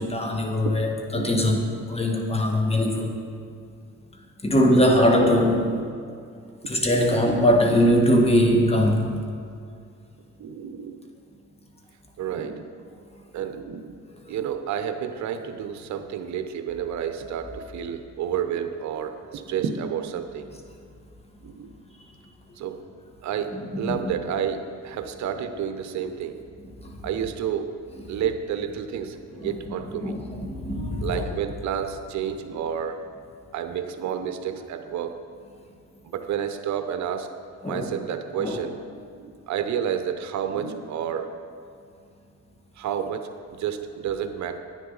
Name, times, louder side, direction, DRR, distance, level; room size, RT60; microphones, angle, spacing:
voice 1, 0.0-3.2 4.4-5.7 6.7-9.2 23.5-24.1 26.8-27.0 29.4-29.5 30.0-31.2 37.6-37.9 38.4-38.6, equal, 20° left, 2 dB, 1.5 m, -21 dB
voice 2, 1.1-1.5 5.6-6.2 6.8-7.2 10.4-11.0 12.2-12.9 13.3-14.0 14.3-20.5 21.4-21.7 22.6-22.8 23.2-26.3 27.0-27.7 28.1-30.1 31.0-33.0 33.5-35.2 36.0-37.3 37.7-41.3 42.8-44.6, right 8 dB, 65° right, 8 dB, 0.8 m, -30 dB
10.0 x 9.7 x 4.0 m, 2.3 s
cardioid pair, 90°, 30 cm